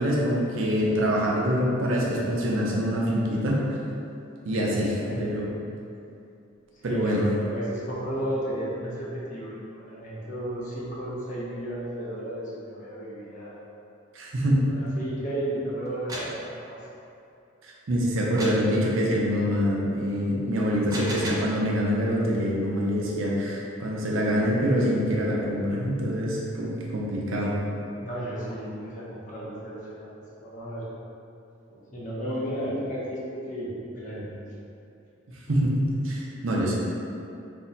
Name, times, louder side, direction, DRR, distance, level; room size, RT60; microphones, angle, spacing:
voice 1, 0.0-3.8 4.4-4.9 5.2-5.5 6.8-7.2 14.1-14.7 17.9-27.5 35.5-36.7, equal, 80° right, -3 dB, 0.6 m, -25 dB
voice 2, 4.5-5.4 6.7-13.6 14.6-16.8 28.0-30.9 31.7-34.4, right 1 dB, 40° left, -7 dB, 0.7 m, -34 dB
sound 1, 15.9-16.4 18.4-18.7 20.7-21.5, right 1 dB, 20° right, 0.3 m, -34 dB
2.7 x 2.1 x 3.9 m, 2.6 s
head